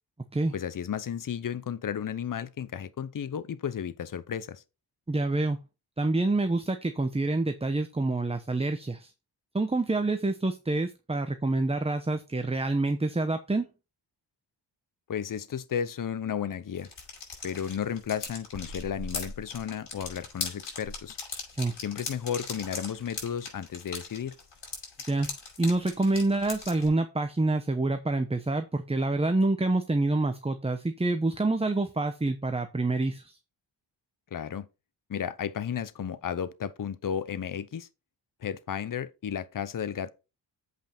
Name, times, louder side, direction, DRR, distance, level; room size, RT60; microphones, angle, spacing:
voice 1, 0.5-4.6 15.1-16.9 17.4-21.2 21.8-24.4 34.3-34.7 35.1-37.9 38.4-40.1, left 8 dB, 45° left, 0.8 m, -33 dB
voice 2, 5.1-5.6 6.0-9.1 9.5-13.6 21.6-21.7 25.1-25.3 25.6-33.4, right 2 dB, 15° right, 0.9 m, -27 dB
sound 1, 16.8-26.9, left 4 dB, 65° left, 5.4 m, -39 dB
8.0 x 5.5 x 4.4 m
cardioid pair, 75°, 46 cm